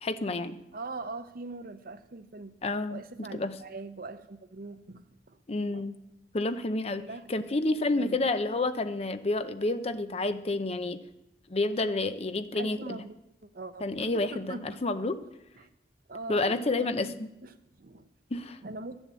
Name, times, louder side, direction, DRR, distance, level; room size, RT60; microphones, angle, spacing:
voice 1, 0.0-0.6 2.6-3.0 3.3-3.5 5.5-6.0 6.3-7.0 7.3-11.0 11.5-12.8 13.8-15.2 16.3-17.3 18.3-18.6, left 2 dB, 35° left, 11 dB, 0.6 m, -29 dB
voice 2, 0.7-2.6 2.9-5.9 7.0-7.4 7.7-8.3 12.5-13.2 13.4-14.8 15.6-15.7 16.1-17.2 17.4-18.1 18.6-19.0, right 3 dB, 55° right, 10 dB, 0.8 m, -42 dB
12.5 x 7.1 x 8.3 m, 0.88 s
head